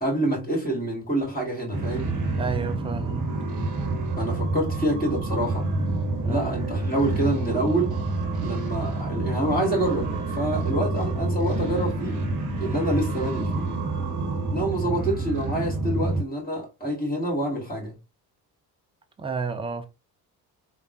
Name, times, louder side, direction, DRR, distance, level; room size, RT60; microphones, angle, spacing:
voice 1, 0.0-2.2 4.2-5.7 6.3-8.0 8.4-12.2 12.6-13.6 14.5-17.9, right 1 dB, 20° left, 1.6 m, -27 dB
sound 1, 1.7-16.2, right 2 dB, 40° right, 0.9 m, -28 dB
voice 2, 2.4-3.4 6.2-6.5 14.8-15.0 19.2-19.9, right 5 dB, 10° right, 0.5 m, -31 dB
3.4 x 2.0 x 2.4 m
hypercardioid pair, 50°, 49 cm